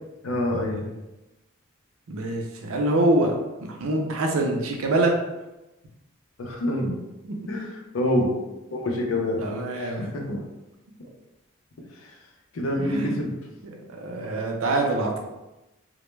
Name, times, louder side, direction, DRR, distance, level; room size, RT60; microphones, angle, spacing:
voice 1, 0.2-0.8 6.4-7.0 7.5-7.7 7.9-8.3 8.7-9.4 9.7-10.4 12.0-12.2 12.5-13.3, left 1 dB, 75° left, 1 dB, 0.5 m, -26 dB
voice 2, 2.1-5.2 7.2-7.6 9.4-10.1 12.8-13.2 13.7-15.3, right 2 dB, 90° right, 2 dB, 0.5 m, -25 dB
2.1 x 2.1 x 3.1 m, 1.0 s
head